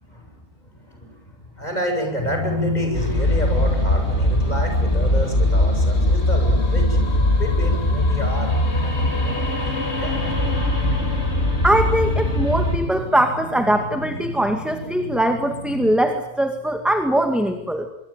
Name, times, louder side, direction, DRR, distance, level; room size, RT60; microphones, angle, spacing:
voice 1, 0.0-10.6, equal, 30° left, 4 dB, 7.9 m, -30 dB
sound 1, 2.2-16.0, left 1 dB, 70° left, 4.5 m, -33 dB
sound 2, 2.9-12.8, left 1 dB, 45° left, 4.0 m, -20 dB
voice 2, 11.6-17.9, right 1 dB, ahead, 6 dB, 2.1 m, -21 dB
25.0 x 24.5 x 9.1 m, 0.79 s
omnidirectional pair, 1.5 m